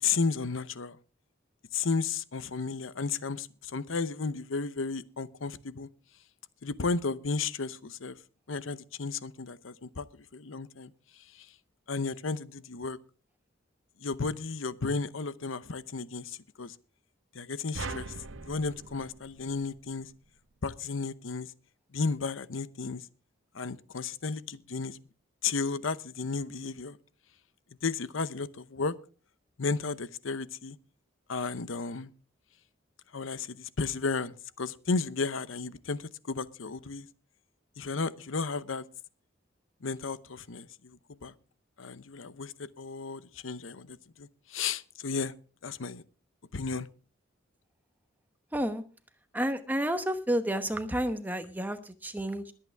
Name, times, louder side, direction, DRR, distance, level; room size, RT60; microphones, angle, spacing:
voice 1, 0.0-1.0 1.7-5.9 6.6-8.2 8.5-10.9 11.2-11.5 11.9-13.0 14.0-16.8 17.3-18.1 18.4-20.1 20.6-21.5 21.9-23.1 23.5-25.0 25.4-27.0 27.8-28.9 29.6-30.8 31.3-32.1 33.1-37.1 37.8-38.8 39.8-41.3 41.8-45.3 45.6-46.0 46.5-46.9, left 4 dB, 90° left, 15 dB, 0.8 m, -33 dB
sound 1, 17.7-20.2, right 3 dB, 85° right, 1.0 m, -41 dB
voice 2, 48.5-48.8 49.3-52.5, right 1 dB, 10° right, 9 dB, 1.0 m, -30 dB
21.5 x 8.8 x 3.5 m, 0.37 s
head